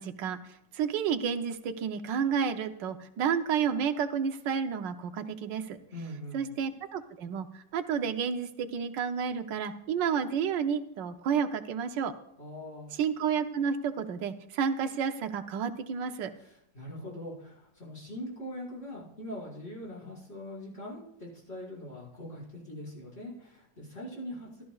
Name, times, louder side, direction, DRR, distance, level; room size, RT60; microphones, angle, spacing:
voice 1, 0.0-5.8 6.3-12.1 13.0-16.3, right 7 dB, 85° right, 8 dB, 1.5 m, -31 dB
voice 2, 5.9-6.5 12.4-12.9 16.4-24.6, left 1 dB, 35° left, -5 dB, 5.7 m, -42 dB
18.0 x 13.0 x 2.4 m, 0.83 s
omnidirectional pair, 1.9 m